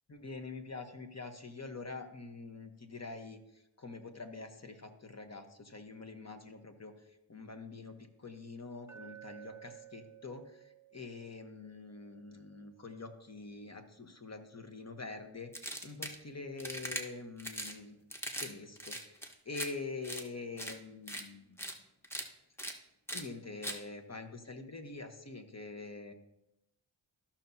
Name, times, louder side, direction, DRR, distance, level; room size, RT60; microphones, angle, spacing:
voice 1, 0.1-3.4 3.8-6.9 7.3-10.6 10.9-18.0 18.4-21.6 23.1-26.1, left 3 dB, 30° left, 6 dB, 1.2 m, -45 dB
Glass, 8.9-13.0, right 11 dB, 35° right, 0.7 m, -55 dB
sound 1, 15.5-16.2 16.6-17.0 17.4-17.7 18.1-18.5 18.8-19.7 20.0-20.2 20.6-20.7 21.1-21.2 21.6-21.7 22.0-22.2 22.6-22.7 23.1-23.2 23.6-23.8, equal, 5° left, 1.1 m, -40 dB
14.0 x 5.8 x 2.7 m, 0.86 s
cardioid pair, 55°, 50 cm